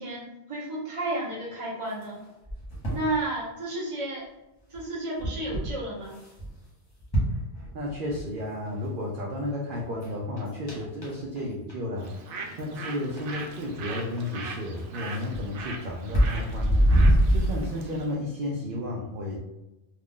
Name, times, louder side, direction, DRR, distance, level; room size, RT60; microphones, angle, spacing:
voice 1, 0.0-2.2 2.9-4.3 4.7-6.2, right 1 dB, 30° right, -4 dB, 0.8 m, -32 dB
sound 1, 2.0-3.1 4.7-4.8 5.2-5.7 6.1-6.5 7.0-8.2 8.7-8.8 9.4-9.5 9.7-10.1 10.4-11.4 11.7-11.8 12.0-12.1 12.4-12.9 13.2-13.3 13.6-13.7 14.2-14.3 14.8-17.8, equal, 20° left, 0.9 m, -25 dB
voice 2, 7.7-19.4, left 1 dB, 60° right, -3 dB, 0.7 m, -33 dB
Bird, 12.0-18.1, right 4 dB, 90° right, 0.9 m, -40 dB
2.5 x 2.3 x 3.5 m, 0.97 s
omnidirectional pair, 1.2 m